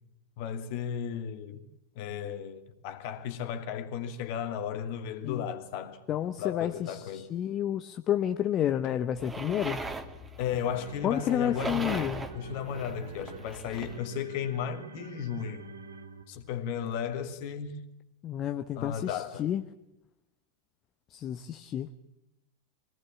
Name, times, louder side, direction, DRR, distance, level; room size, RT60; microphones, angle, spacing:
voice 1, 0.4-1.6 1.9-7.3 10.4-15.7 16.3-17.9 18.8-19.5, left 8 dB, 45° left, 2.5 m, -35 dB
voice 2, 6.1-9.8 11.0-12.2 18.2-19.6 21.1-22.0, left 10 dB, 30° left, 1.0 m, -30 dB
sound 1, 9.1-14.0, right 2 dB, 10° right, 2.3 m, -40 dB
sound 2, 10.1-16.6, right 4 dB, 75° right, 2.0 m, -47 dB
24.5 x 18.5 x 8.7 m
figure-of-eight pair, 90°, 0 cm